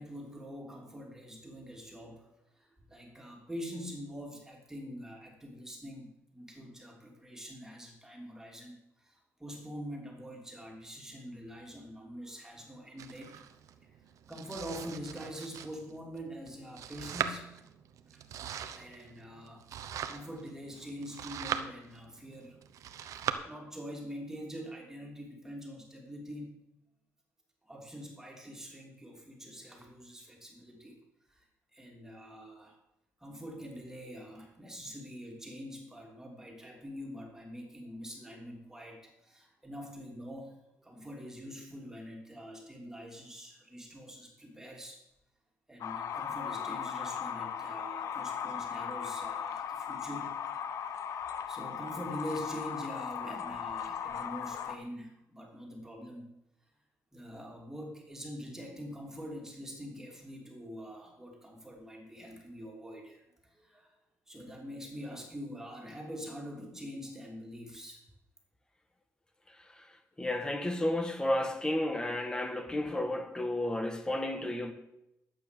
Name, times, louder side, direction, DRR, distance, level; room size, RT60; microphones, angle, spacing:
voice 1, 0.0-2.3 2.6-13.4 13.8-13.9 14.3-17.5 18.7-22.6 23.1-23.2 23.4-26.6 27.6-31.0 31.3-31.4 31.7-32.8 33.2-45.0 45.7-50.3 51.5-56.3 57.1-64.0 64.3-68.0, equal, 10° right, 3.1 m, -45 dB
Domestic sounds home sounds, 13.0-23.3, right 9 dB, 70° right, 0.9 m, -41 dB
sound 1, 45.8-54.8, left 8 dB, 65° left, 1.0 m, -37 dB
voice 2, 69.5-69.9 70.2-74.7, left 1 dB, 15° left, 1.5 m, -32 dB
12.0 x 8.3 x 6.8 m
cardioid pair, 105°, 6 cm